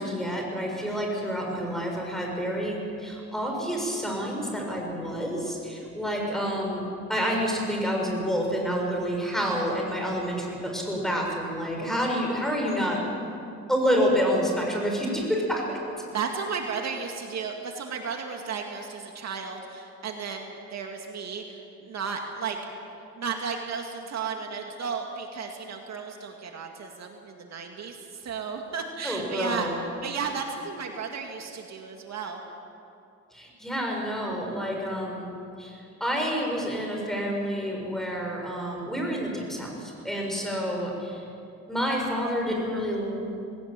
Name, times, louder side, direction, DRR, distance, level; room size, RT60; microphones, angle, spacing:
voice 1, 0.0-13.0 13.7-15.8 29.0-29.8 33.3-35.3 35.6-41.2 41.7-43.1, equal, ahead, 0 dB, 6.8 m, -28 dB
voice 2, 16.1-22.6 22.9-32.4, right 5 dB, 60° right, 3 dB, 2.2 m, -34 dB
19.0 x 18.0 x 9.1 m, 2.7 s
cardioid pair, 90°, 30 cm